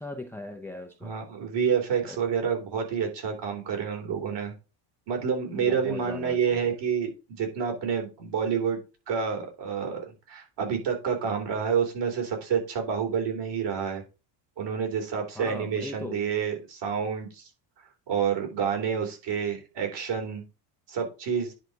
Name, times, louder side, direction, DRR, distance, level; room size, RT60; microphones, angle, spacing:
voice 1, 0.0-1.1 2.1-2.2 5.5-6.6 15.4-16.2, left 2 dB, 5° left, 5 dB, 0.8 m, -39 dB
voice 2, 1.0-4.5 5.1-8.8 9.1-14.0 14.6-17.5 18.1-20.4 20.9-21.5, right 7 dB, 55° right, 3 dB, 3.4 m, -28 dB
10.0 x 3.9 x 4.7 m, 0.29 s
cardioid pair, 130°, 50 cm